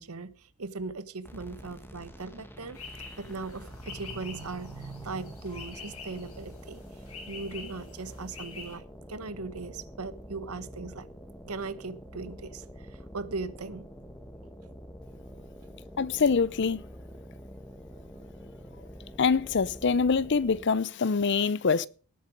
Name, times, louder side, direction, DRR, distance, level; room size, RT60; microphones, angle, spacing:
voice 1, 0.0-2.8 3.2-6.8 7.3-11.1 11.5-13.8, right 3 dB, 90° right, 1.2 m, -39 dB
sound 1, 1.2-20.9, equal, 10° left, 1.6 m, -46 dB
sound 2, 2.7-8.7, left 5 dB, 80° left, 6.5 m, -47 dB
voice 2, 16.0-16.8 19.2-21.9, left 5 dB, 55° left, 0.6 m, -25 dB
18.5 x 8.4 x 5.1 m
head